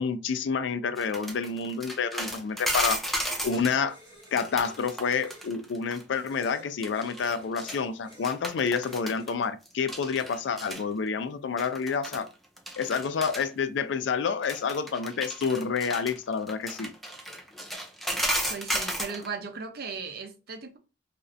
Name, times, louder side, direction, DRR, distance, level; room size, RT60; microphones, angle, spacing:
voice 1, 0.0-4.0 4.3-12.3 12.8-16.9, left 5 dB, 85° left, 0.4 m, -29 dB
sound 1, 1.0-3.8 4.2-6.0 6.3-6.5 6.8-7.8 8.1-9.3 9.7-10.8 11.6-12.3 12.6-13.5 14.4-19.3, equal, ahead, 0.5 m, -34 dB
sound 2, 3.9-5.6 6.1-8.4 8.8-9.3, equal, 25° right, 1.6 m, -52 dB
voice 2, 18.5-20.8, right 5 dB, 60° right, 0.6 m, -37 dB
3.1 x 2.5 x 2.5 m
head